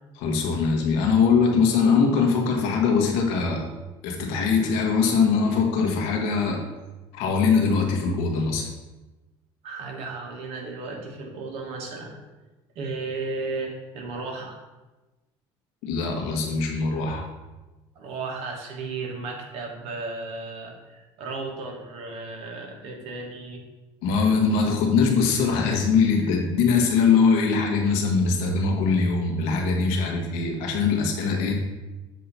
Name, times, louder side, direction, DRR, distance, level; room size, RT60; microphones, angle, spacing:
voice 1, 0.2-3.7 4.0-6.6 7.1-8.7 15.8-17.3 24.0-31.6, left 5 dB, 85° left, 2 dB, 1.3 m, -22 dB
voice 2, 9.6-12.2 12.7-14.6 17.9-23.6, right 3 dB, 70° right, 1 dB, 1.5 m, -34 dB
7.4 x 2.9 x 5.5 m, 1.1 s
cardioid pair, 105°, 11 cm